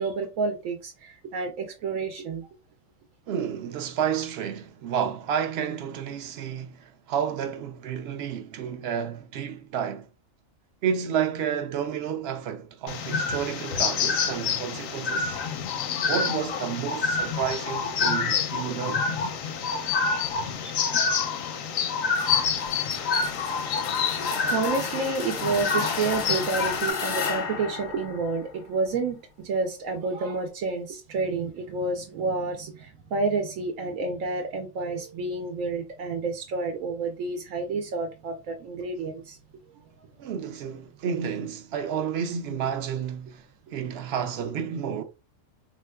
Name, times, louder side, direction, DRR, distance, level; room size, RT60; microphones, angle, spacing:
voice 1, 0.0-2.5 5.0-5.1 24.4-39.4 44.4-44.5, right 4 dB, 85° right, 1.0 m, -29 dB
voice 2, 3.3-10.1 10.8-15.4 16.1-19.0 40.2-43.5 43.7-45.0, right 8 dB, 65° right, 0.7 m, -30 dB
sound 1, 12.9-26.9, left 5 dB, 85° left, 1.0 m, -27 dB
sound 2, 22.1-28.9, left 5 dB, 50° left, 0.6 m, -34 dB
3.6 x 2.8 x 2.2 m
omnidirectional pair, 1.4 m